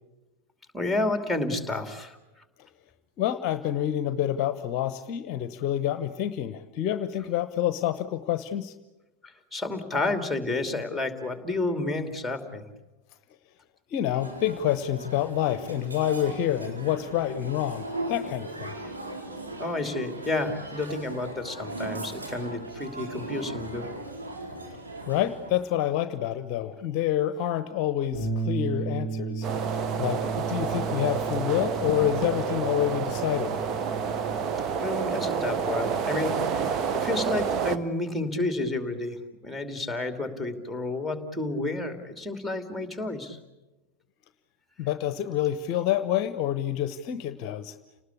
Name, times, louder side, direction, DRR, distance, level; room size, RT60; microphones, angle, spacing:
voice 1, 0.7-2.2 9.2-12.6 19.6-23.9 34.8-39.2 39.4-43.4, left 2 dB, ahead, 7 dB, 2.8 m, -30 dB
voice 2, 3.2-8.7 13.9-18.8 25.0-29.5 30.0-33.6 44.8-47.7, left 11 dB, 40° left, 13 dB, 0.9 m, -28 dB
sound 1, 14.2-25.6, right 2 dB, 75° right, 4.7 m, -38 dB
Bass guitar, 28.1-34.4, right 4 dB, 45° right, 6.8 m, -34 dB
sound 2, 29.4-37.8, right 6 dB, 30° right, 1.2 m, -29 dB
29.5 x 19.5 x 8.5 m, 1.1 s
figure-of-eight pair, 90°, 0 cm